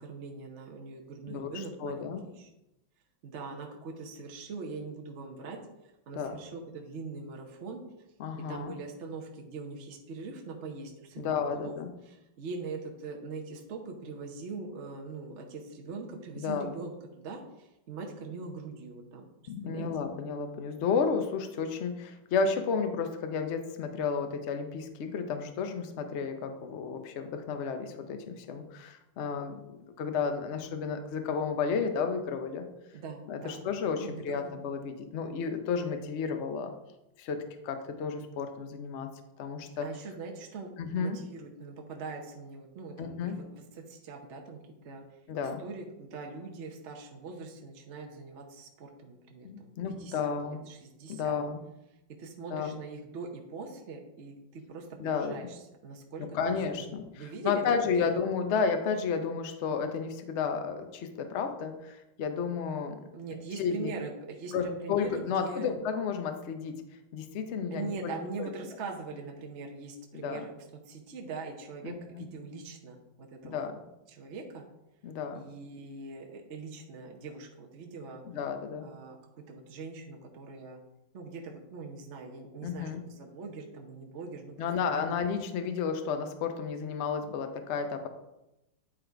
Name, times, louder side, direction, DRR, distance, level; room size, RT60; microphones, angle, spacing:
voice 1, 0.0-2.5 3.2-5.6 6.1-7.8 8.5-11.7 12.0-19.3 19.6-19.9 32.9-33.6 34.0-34.5 39.8-45.0 45.4-51.4 52.2-58.1 63.1-65.8 67.7-70.5 70.9-73.7 74.1-74.6 75.3-78.2 78.8-79.2 79.5-80.8 81.1-85.2, right 4 dB, 50° right, 1 dB, 0.9 m, -42 dB
voice 2, 1.3-2.2 6.1-6.4 8.2-8.7 11.2-11.9 16.4-16.7 19.5-29.6 30.0-32.7 33.3-36.7 37.2-39.1 39.4-39.9 40.8-41.2 43.0-43.4 45.3-45.6 49.4-50.6 51.1-51.6 52.5-52.8 55.0-55.4 56.2-63.0 63.3-63.9 64.5-66.8 67.1-68.1 68.4-68.5 70.1-70.4 71.8-72.2 73.4-73.8 75.0-75.4 78.3-78.9 82.6-83.0 84.6-88.1, left 6 dB, 75° left, 7 dB, 0.6 m, -32 dB
9.8 x 3.9 x 4.5 m, 0.93 s
omnidirectional pair, 2.2 m